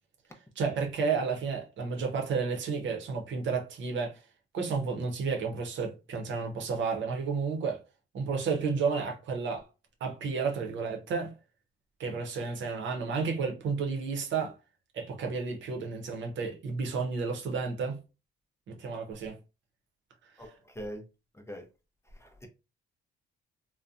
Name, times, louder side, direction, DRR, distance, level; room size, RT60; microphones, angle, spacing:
voice 1, 0.6-4.2 4.5-7.8 8.1-9.6 10.0-11.3 12.0-14.5 14.9-18.0 18.7-19.4, right 5 dB, 70° right, 0.7 m, -31 dB
voice 2, 20.4-21.0 21.3-21.7 22.2-22.5, equal, 15° left, 0.5 m, -42 dB
2.7 x 2.1 x 2.4 m
cardioid pair, 90°, 20 cm